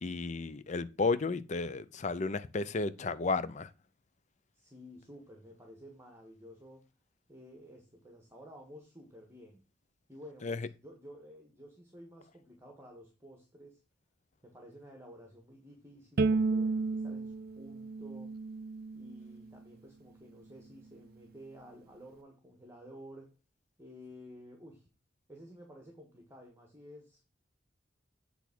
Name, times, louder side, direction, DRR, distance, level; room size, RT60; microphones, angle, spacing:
voice 1, 0.0-3.7 10.4-10.6, left 3 dB, 40° left, 0.5 m, -33 dB
voice 2, 4.5-6.8 7.3-9.6 10.1-13.8 14.4-18.3 18.9-23.3 23.8-24.9 25.3-27.2, equal, 15° right, 1.4 m, -52 dB
Bowed string instrument, 16.2-19.4, right 3 dB, 55° right, 0.4 m, -32 dB
8.2 x 3.5 x 6.0 m
head